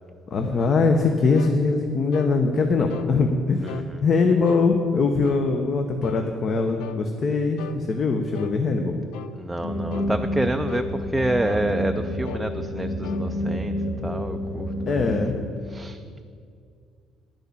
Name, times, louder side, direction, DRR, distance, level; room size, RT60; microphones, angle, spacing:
voice 1, 0.3-3.7 4.0-9.0 14.9-15.3, left 4 dB, 45° left, 4 dB, 0.8 m, -22 dB
sound 1, 1.3-1.6 2.1-2.4 2.9-3.1 3.7-3.9 4.4-4.7 5.2-5.5 6.0-6.3 6.8-7.0 7.6-7.8 8.3-8.6 9.1-9.4 9.9-10.1 10.7-10.9 11.5-11.7 12.2-12.5 13.0-13.3, left 8 dB, 85° left, 0.5 m, -38 dB
voice 2, 3.6-4.1 9.4-13.7 14.0-15.0 15.7-16.2, right 1 dB, 5° right, 6 dB, 0.4 m, -28 dB
sound 2, 9.6-15.3, equal, 65° left, 3.1 m, -29 dB
10.5 x 6.5 x 8.5 m, 2.3 s
cardioid pair, 110°, 0 cm